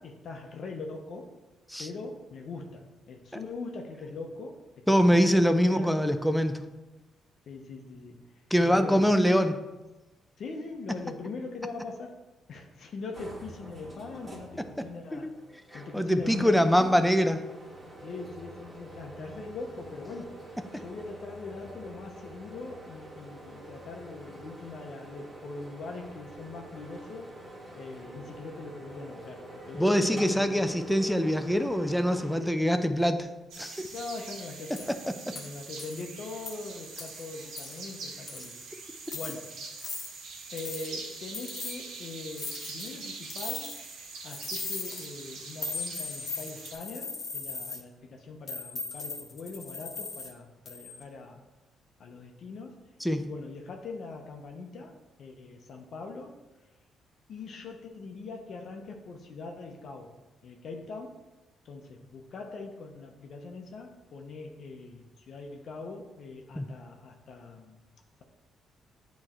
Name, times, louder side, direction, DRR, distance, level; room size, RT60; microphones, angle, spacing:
voice 1, 0.0-1.3 1.8-4.6 5.0-6.1 7.5-8.2 8.6-9.1 10.4-12.2 12.5-15.3 15.7-17.1 17.8-20.4 20.7-27.3 27.7-30.7 33.8-34.9 35.3-38.6 39.1-39.6 40.5-43.7 44.2-51.4 52.0-52.8 53.2-56.4 57.3-60.1 60.4-61.3 61.6-67.8, left 3 dB, 60° left, 3 dB, 0.7 m, -42 dB
voice 2, 4.9-6.6 8.5-9.6 15.1-15.3 15.9-17.4 29.7-33.3 33.6-33.9 35.3-35.4 53.0-53.2 66.6-66.7, equal, ahead, 8 dB, 0.5 m, -24 dB
sound 1, 13.1-32.4, right 1 dB, 30° right, 1.9 m, -46 dB
sound 2, 33.5-46.7, right 3 dB, 80° right, 1.3 m, -43 dB
sound 3, 34.8-34.9 35.4-35.5 35.8-36.0 36.5-36.6 37.0-37.2 37.6-37.8 38.3-38.6 39.0-39.4 39.8-40.1 40.6-40.9 41.3-41.8 42.3-42.9 43.3-43.9 44.3-45.1 45.6-47.8 48.5-50.3 50.7-51.0, left 3 dB, 45° left, 1.2 m, -38 dB
8.7 x 3.1 x 4.3 m, 1.1 s
cardioid pair, 90°, 0 cm